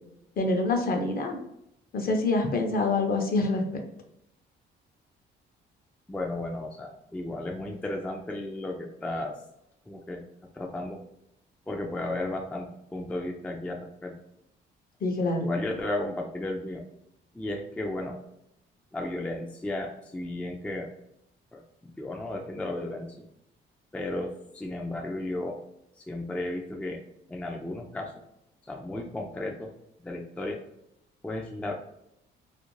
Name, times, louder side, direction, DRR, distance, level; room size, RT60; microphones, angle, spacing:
voice 1, 0.4-1.4 1.9-3.6 15.0-15.6, left 2 dB, 50° left, 3 dB, 0.6 m, -26 dB
voice 2, 6.1-9.4 9.9-10.3 10.5-11.0 11.7-14.2 15.4-16.8 17.3-18.2 18.9-20.9 21.5-23.2 23.9-25.6 26.0-27.0 27.3-28.1 28.6-29.7 30.0-30.6 31.2-31.7, left 1 dB, 5° left, 1 dB, 0.3 m, -34 dB
2.4 x 2.1 x 3.0 m, 0.79 s
cardioid pair, 90°, 20 cm